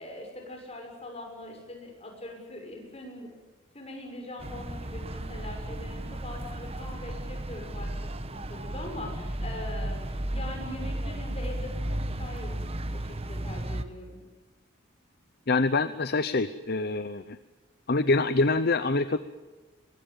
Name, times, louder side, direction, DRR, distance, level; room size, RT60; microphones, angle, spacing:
voice 1, 0.0-3.3 3.7-7.9 8.3-14.2, left 1 dB, 30° left, 2 dB, 6.8 m, -42 dB
sound 1, 4.4-13.8, right 1 dB, 30° right, 1.2 m, -34 dB
voice 2, 15.5-17.4 17.9-19.2, left 3 dB, 50° left, 12 dB, 0.8 m, -25 dB
23.0 x 23.0 x 9.0 m, 1.3 s
head